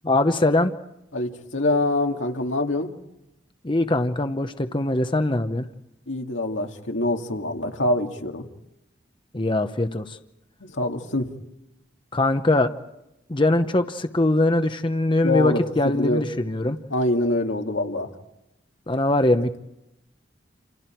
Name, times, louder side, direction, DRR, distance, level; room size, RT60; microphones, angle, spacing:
voice 1, 0.0-0.7 3.6-5.6 9.3-10.2 12.1-12.7 13.3-16.8 18.9-19.6, left 2 dB, 25° left, 8 dB, 0.8 m, -22 dB
voice 2, 1.1-2.9 6.1-8.4 10.7-11.3 15.2-16.3 16.9-18.1, left 2 dB, 90° left, 3 dB, 2.3 m, -25 dB
29.0 x 28.0 x 4.6 m, 0.89 s
head